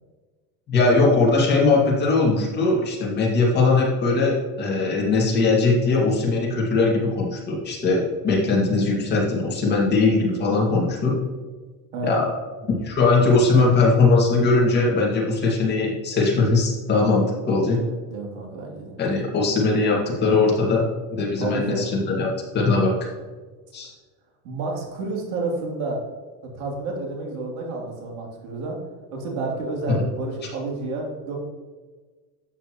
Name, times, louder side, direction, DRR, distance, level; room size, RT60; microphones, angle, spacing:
voice 1, 0.7-11.2 12.0-12.3 12.7-17.8 19.0-22.3 22.5-22.9 23.7-23.9 29.9-30.0, left 3 dB, 25° left, -3 dB, 2.1 m, -20 dB
voice 2, 11.9-12.3 17.7-19.0 21.4-22.0 24.4-26.0 26.5-28.8 29.1-31.3, right 3 dB, 85° right, -1 dB, 3.2 m, -30 dB
12.0 x 8.2 x 3.1 m, 1.4 s
cardioid pair, 165°, 41 cm